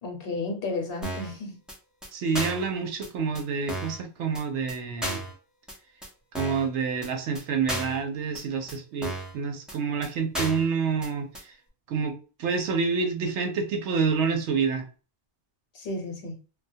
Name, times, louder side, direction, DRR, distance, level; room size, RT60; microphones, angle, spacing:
voice 1, 0.0-1.6 15.7-16.4, left 2 dB, 60° left, 1.0 m, -33 dB
sound 1, 1.0-1.3 1.7-1.8 2.0-2.1 2.3-2.7 3.0-3.1 3.3-3.4 3.7-4.0 4.3-4.4 4.7-4.8 5.0-5.3 5.7-5.8 6.0-6.1 6.3-6.7 7.0-7.1 7.3-7.4 7.7-8.0 8.3-8.4 8.7-8.8 9.0-9.3 9.7-9.8 10.0-10.1 10.3-10.7 11.0-11.1 11.3-11.4, right 1 dB, ahead, 0.4 m, -33 dB
voice 2, 2.1-5.2 6.3-11.5 11.9-14.8, right 5 dB, 85° right, 0.9 m, -28 dB
2.2 x 2.2 x 2.6 m
omnidirectional pair, 1.1 m